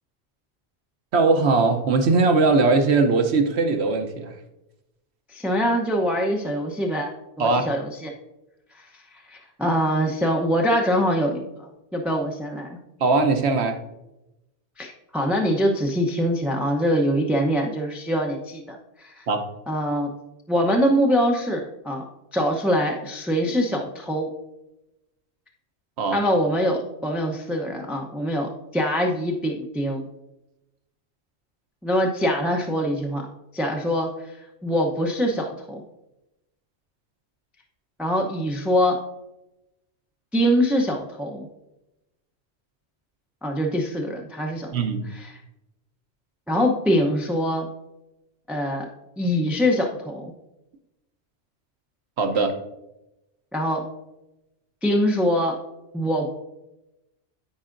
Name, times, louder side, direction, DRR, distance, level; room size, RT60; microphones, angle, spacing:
voice 1, 1.1-4.3 7.4-7.7 13.0-13.8 19.3-19.5 26.0-26.2 44.7-45.1 52.2-52.6, right 3 dB, 65° right, 6 dB, 1.1 m, -20 dB
voice 2, 5.3-7.1 7.4-8.1 8.8-12.8 14.8-19.3 19.7-20.1 20.5-22.0 22.3-24.3 26.1-30.0 31.8-33.3 33.5-35.8 38.0-39.0 40.3-41.5 43.4-44.7 45.1-45.3 46.5-47.7 48.5-48.9 49.2-50.3 53.5-53.8 54.8-55.6 55.9-56.3, equal, ahead, 1 dB, 0.6 m, -24 dB
14.5 x 4.8 x 2.6 m, 0.94 s
omnidirectional pair, 1.2 m